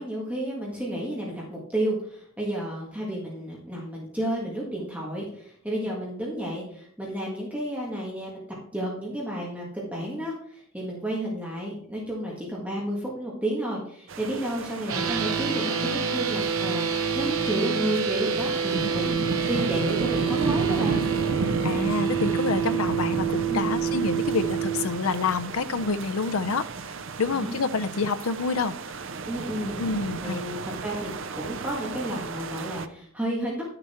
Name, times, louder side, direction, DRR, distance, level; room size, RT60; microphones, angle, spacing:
voice 1, 0.0-8.5 8.7-19.2 19.5-21.1 23.5-23.7 27.3-27.6 29.3-29.8 30.2-33.7, right 1 dB, 5° right, -4 dB, 1.8 m, -31 dB
sound 1, 14.1-32.9, right 4 dB, 60° right, 0.6 m, -34 dB
sound 2, 14.9-24.8, right 6 dB, 80° right, 0.9 m, -27 dB
sound 3, 18.3-19.2 20.2-20.4 21.0-21.2 21.8-22.0 23.2-23.9 25.2-26.0, right 1 dB, 25° right, 5.1 m, -44 dB
voice 2, 21.6-26.7 27.2-28.7 29.8-30.4, left 4 dB, 80° left, 11 dB, 0.6 m, -27 dB
11.0 x 6.8 x 4.3 m, 0.63 s
head